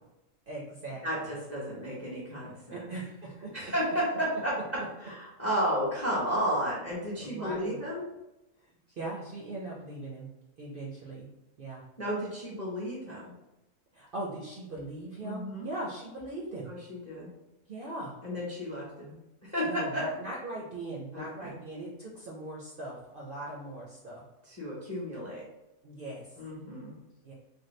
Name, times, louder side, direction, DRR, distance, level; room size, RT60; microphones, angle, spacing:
voice 1, 0.5-1.3 2.7-3.7 7.2-7.8 8.6-10.3 10.6-11.3 11.6-11.8 13.9-16.7 17.7-18.2 19.6-24.3 25.8-26.3 27.2-27.3, right 2 dB, 55° right, -4 dB, 0.6 m, -40 dB
voice 2, 1.0-2.8 3.5-4.5 5.0-8.0 12.0-13.3 15.2-15.7 16.7-17.3 18.2-20.0 21.1-21.6 24.5-25.4 26.4-26.9, equal, 15° left, -4 dB, 0.6 m, -33 dB
3.4 x 2.2 x 3.1 m, 0.94 s
omnidirectional pair, 1.4 m